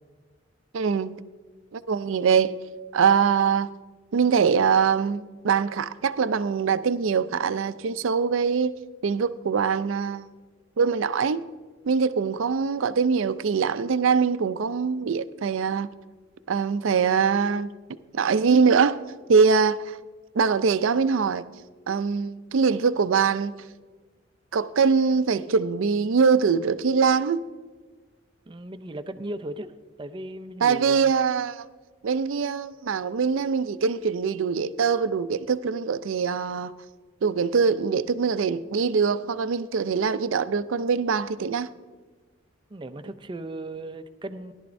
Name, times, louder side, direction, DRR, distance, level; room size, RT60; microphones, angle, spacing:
voice 1, 0.7-1.2 1.7-2.6 2.9-3.7 4.1-8.7 9.0-10.3 10.8-11.4 11.9-15.9 16.5-17.7 18.1-19.0 19.3-20.0 20.3-21.4 21.9-23.5 24.5-27.5 30.6-31.7 32.0-36.7 37.2-41.7, right 5 dB, 80° right, 0.4 m, -23 dB
voice 2, 28.5-29.7 30.0-31.1 42.7-44.5, right 1 dB, 25° right, 0.5 m, -36 dB
17.0 x 11.5 x 2.6 m
head